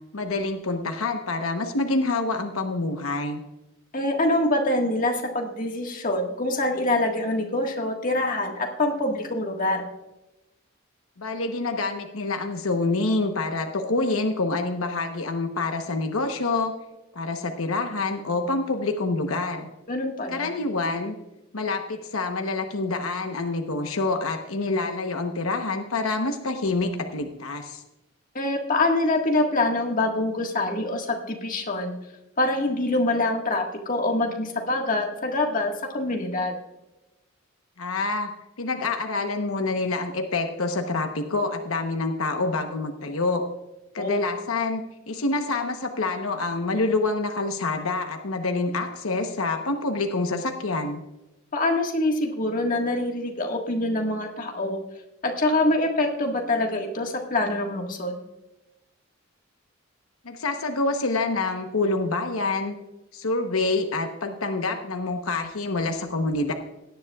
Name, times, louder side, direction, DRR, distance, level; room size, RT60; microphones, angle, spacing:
voice 1, 0.1-3.4 11.2-16.7 17.1-19.7 20.3-21.1 21.5-27.8 37.8-38.3 38.6-43.4 43.9-51.0 60.2-62.7 63.1-66.5, left 3 dB, 85° left, 5 dB, 1.0 m, -27 dB
voice 2, 3.9-9.9 19.9-20.5 28.3-32.0 32.4-36.5 44.0-44.2 51.5-54.8 55.2-58.2, left 2 dB, 40° left, 1 dB, 1.6 m, -25 dB
17.5 x 10.5 x 2.3 m, 0.98 s
head